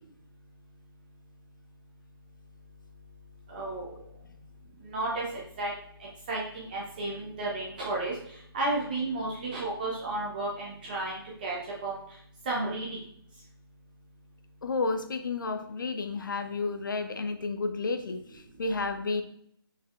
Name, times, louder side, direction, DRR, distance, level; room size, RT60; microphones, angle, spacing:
voice 1, 3.5-4.0 4.8-5.2 5.6-5.7 6.3-8.1 8.5-11.6 11.8-12.0 12.5-13.0, right 2 dB, 20° right, -4 dB, 0.6 m, -32 dB
voice 2, 14.6-19.2, left 3 dB, 50° left, 8 dB, 0.5 m, -31 dB
4.9 x 4.1 x 2.4 m, 0.67 s
figure-of-eight pair, 150°, 13 cm